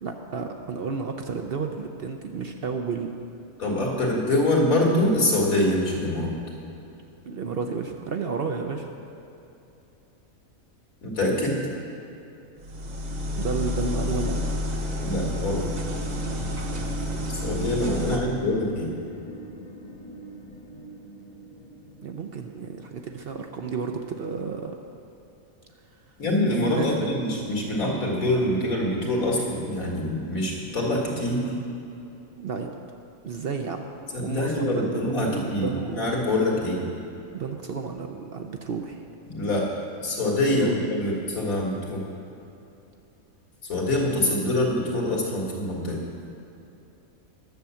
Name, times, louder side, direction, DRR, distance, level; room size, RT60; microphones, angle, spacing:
voice 1, 0.0-3.1 7.2-8.9 13.4-14.5 18.0-18.2 22.0-24.9 26.7-27.1 32.4-32.7 33.2-33.9 34.2-36.1 37.3-39.0 40.5-40.7, right 5 dB, 55° right, 4 dB, 0.7 m, -31 dB
voice 2, 3.6-6.3 11.0-11.6 15.0-15.7 17.3-18.9 26.2-31.5 34.1-36.8 39.3-39.7 40.0-42.0 43.6-46.0, left 1 dB, 85° left, -2 dB, 2.4 m, -25 dB
sound 1, 12.6-18.2, left 1 dB, 35° right, 0.9 m, -29 dB
sound 2, 15.4-22.9, left 2 dB, 35° left, 0.9 m, -43 dB
10.5 x 7.4 x 6.9 m, 2.9 s
omnidirectional pair, 1.4 m